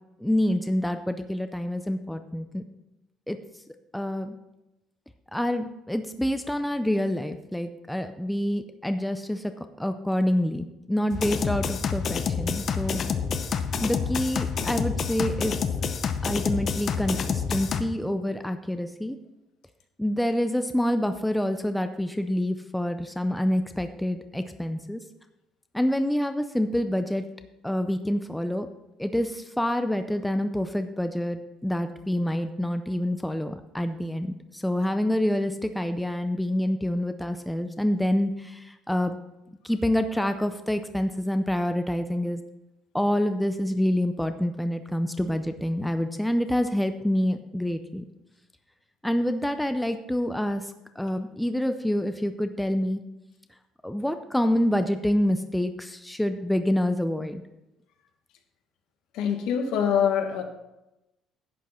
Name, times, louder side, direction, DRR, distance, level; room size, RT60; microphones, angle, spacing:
voice 1, 0.2-2.6 3.3-3.4 3.9-4.4 5.3-13.0 13.8-15.6 16.2-19.2 20.0-25.0 25.7-27.2 27.6-28.7 29.0-39.2 39.6-42.4 42.9-48.1 49.0-53.0 53.8-57.4, left 1 dB, 5° left, 8 dB, 0.4 m, -27 dB
sound 1, 11.1-17.8, left 6 dB, 35° left, 0.7 m, -28 dB
voice 2, 59.1-60.4, left 8 dB, 70° left, 5 dB, 1.5 m, -24 dB
11.0 x 8.2 x 4.3 m, 0.94 s
cardioid pair, 170°, 0 cm